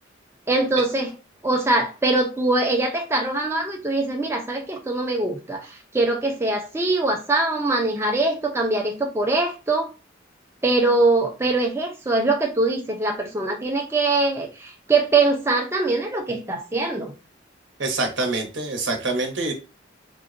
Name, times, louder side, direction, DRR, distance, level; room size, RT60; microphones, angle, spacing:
voice 1, 0.5-1.1 1.4-9.9 10.6-17.1, right 2 dB, 15° right, 0.4 m, -22 dB
voice 2, 17.8-19.5, right 2 dB, 80° right, 0.9 m, -25 dB
3.7 x 2.1 x 2.5 m
head